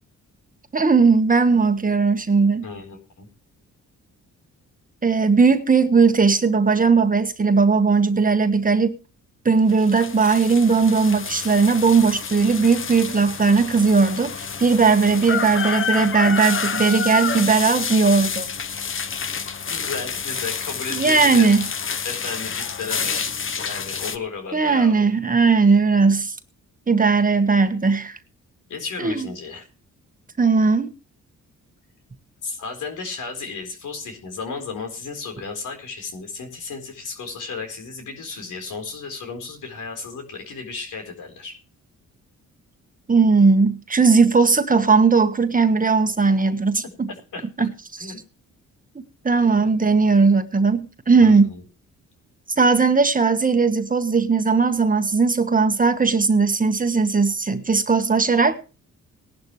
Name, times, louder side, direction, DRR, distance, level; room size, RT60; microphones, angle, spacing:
voice 1, 0.7-2.6 5.0-9.0 9.4-18.5 20.9-21.7 23.1-23.2 24.5-26.3 26.9-28.2 29.0-29.3 30.4-30.9 43.1-47.1 47.6-47.7 48.9-51.5 52.6-58.6, right 4 dB, 25° right, 1.5 m, -18 dB
voice 2, 2.6-3.3 19.7-21.6 22.0-23.2 23.6-25.1 28.7-29.6 32.4-41.6 47.1-47.7 48.0-48.2 49.4-49.7 51.2-51.6, left 4 dB, 75° left, 4.4 m, -34 dB
sound 1, 9.7-24.2, left 6 dB, 40° left, 1.1 m, -28 dB
18.5 x 11.5 x 3.3 m
cardioid pair, 85°, 31 cm